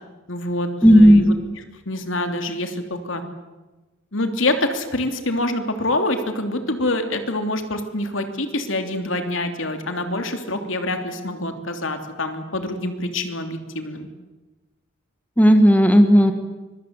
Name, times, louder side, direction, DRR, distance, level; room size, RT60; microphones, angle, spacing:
voice 1, 0.3-1.2 1.9-3.2 4.1-14.1, left 1 dB, 70° left, 6 dB, 3.1 m, -26 dB
voice 2, 0.8-1.3 15.4-16.3, equal, 10° left, 7 dB, 1.8 m, -12 dB
24.5 x 23.5 x 8.2 m, 1.2 s
head